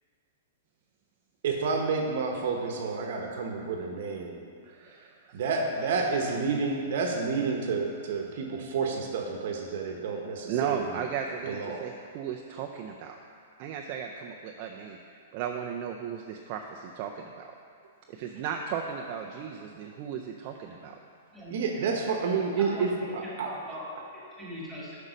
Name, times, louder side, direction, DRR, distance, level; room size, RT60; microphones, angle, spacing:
voice 1, 1.4-4.4 5.3-10.8 11.5-11.8 21.5-23.5, right 4 dB, 60° right, 2 dB, 0.9 m, -29 dB
voice 2, 4.6-5.4 6.0-6.1 10.5-13.2 13.6-17.5 18.1-21.0, right 7 dB, 35° right, 2 dB, 0.4 m, -36 dB
voice 3, 22.6-25.0, equal, 5° right, -7 dB, 2.1 m, -41 dB
8.1 x 5.3 x 5.1 m, 2.2 s
hypercardioid pair, 165°, 0 cm